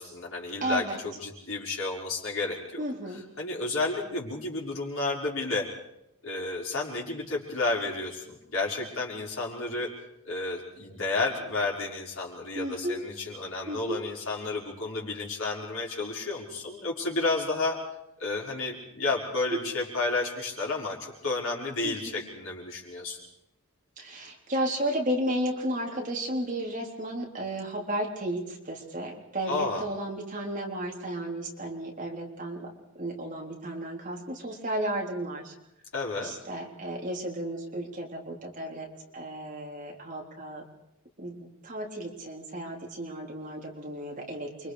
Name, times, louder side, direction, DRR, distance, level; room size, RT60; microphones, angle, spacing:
voice 1, 0.0-5.7 6.2-9.9 10.2-17.8 18.2-23.2 29.5-29.9 35.9-36.3, left 3 dB, 70° left, -2 dB, 5.6 m, -31 dB
voice 2, 0.6-1.0 2.8-3.2 12.5-13.0 13.7-14.0 21.8-22.2 24.0-32.7 33.0-35.5 36.2-38.9 39.1-40.6 41.2-44.7, right 1 dB, 35° right, -1 dB, 3.9 m, -33 dB
29.0 x 24.5 x 5.1 m, 0.85 s
head